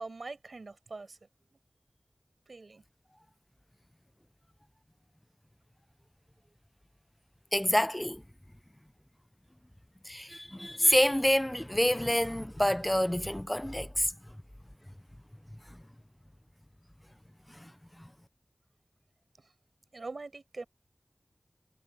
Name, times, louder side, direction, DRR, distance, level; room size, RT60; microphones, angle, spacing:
voice 1, 0.0-1.6 2.5-2.8 6.4-6.5 19.4-19.5 19.9-20.7, right 3 dB, 85° right, 5.4 m, -43 dB
voice 2, 7.5-8.2 10.0-14.1 15.7-15.8 17.5-17.7 18.0-18.1, left 1 dB, 15° left, 0.6 m, -27 dB
wide cardioid pair, 55°, 0 cm